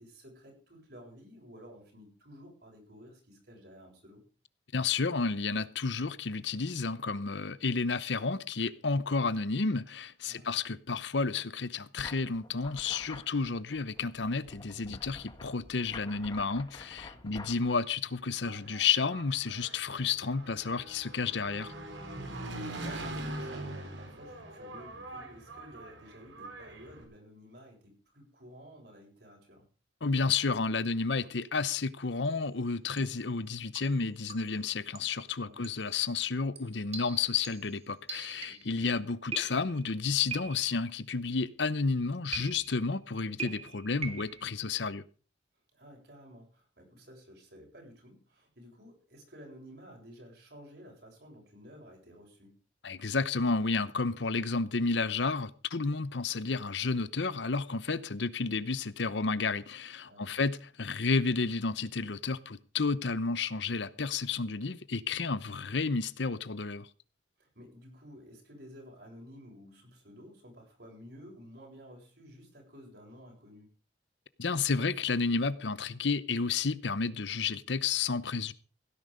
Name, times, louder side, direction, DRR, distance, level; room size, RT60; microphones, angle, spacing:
voice 1, 0.0-4.2 10.2-10.5 17.1-17.4 22.4-29.6 35.4-35.6 38.5-38.7 45.7-52.6 60.1-60.3 67.4-73.7, equal, 60° right, 7.5 m, -52 dB
voice 2, 4.7-21.7 30.0-45.0 52.8-66.9 74.4-78.5, left 4 dB, 75° left, 0.9 m, -31 dB
sound 1, 12.0-17.7, left 2 dB, 25° left, 1.4 m, -49 dB
Engine, 18.2-27.0, right 1 dB, 80° right, 3.9 m, -42 dB
sound 2, 32.2-32.5 33.0-33.3 33.8-34.6 34.9-35.2 35.6-35.9 36.6-38.8 39.3-39.9 40.3-40.9 42.3-42.9 43.4-44.4, right 5 dB, 35° right, 2.0 m, -43 dB
16.5 x 10.5 x 5.0 m
head